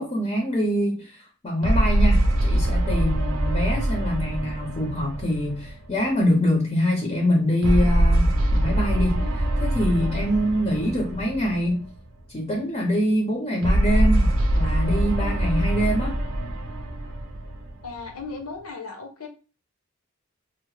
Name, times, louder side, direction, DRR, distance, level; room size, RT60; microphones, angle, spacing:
voice 1, 0.0-11.9 12.3-16.2, equal, 25° left, 1 dB, 0.6 m, -25 dB
sound 1, 1.6-6.2 7.6-12.0 13.6-18.2, right 1 dB, 70° right, 0.6 m, -23 dB
voice 2, 17.8-19.3, left 4 dB, 85° left, 3 dB, 0.8 m, -36 dB
2.8 x 2.0 x 3.1 m, 0.34 s
head